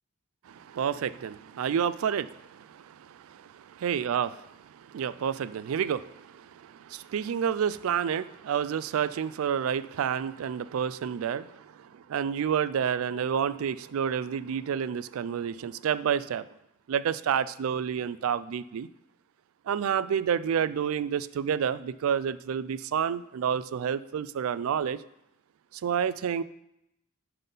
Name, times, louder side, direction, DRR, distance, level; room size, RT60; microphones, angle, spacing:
voice 1, 0.5-4.3 4.7-16.5 16.9-18.9 19.7-25.0 25.8-26.4, right 8 dB, 85° right, 16 dB, 0.3 m, -29 dB
5.5 x 5.5 x 5.4 m, 0.83 s
head